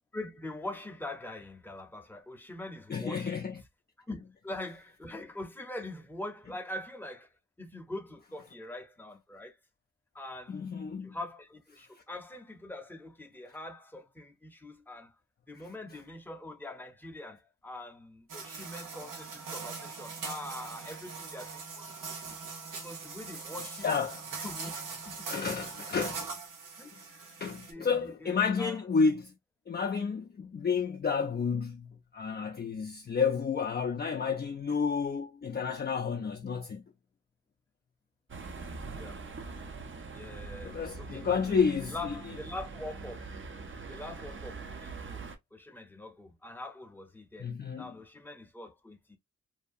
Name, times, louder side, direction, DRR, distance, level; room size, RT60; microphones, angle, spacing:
voice 1, 0.1-3.4 4.0-7.3 7.6-9.6 10.1-10.7 11.0-15.1 15.5-21.9 22.3-22.4 22.7-23.9 24.3-24.8 25.1-25.2 25.6-25.9 26.8-27.4 27.7-28.8 38.9-39.2 40.1-41.6 41.9-43.3 43.9-45.2 45.5-47.5 47.8-49.2, left 2 dB, 5° left, 0.7 m, -43 dB
voice 2, 2.9-3.6 10.5-11.2 23.8-24.2 25.3-26.3 27.4-29.3 29.7-36.8 40.6-42.1 47.4-47.9, left 5 dB, 30° left, 0.4 m, -30 dB
sound 1, 18.3-27.7, right 4 dB, 80° right, 0.9 m, -41 dB
sound 2, 38.3-45.4, right 4 dB, 40° right, 0.6 m, -43 dB
2.7 x 2.2 x 2.4 m
cardioid pair, 75°, 31 cm